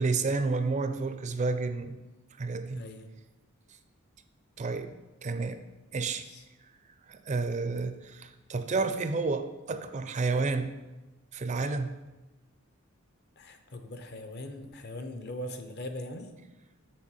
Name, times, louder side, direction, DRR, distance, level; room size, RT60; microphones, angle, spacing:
voice 1, 0.0-2.0 2.4-2.8 4.6-4.9 5.2-5.6 5.9-6.2 7.1-10.7 11.3-12.0, right 3 dB, 35° right, 9 dB, 0.4 m, -30 dB
voice 2, 2.8-3.1 6.2-6.5 13.4-16.3, left 1 dB, 50° left, 7 dB, 0.7 m, -40 dB
7.5 x 4.2 x 5.5 m, 1.1 s
head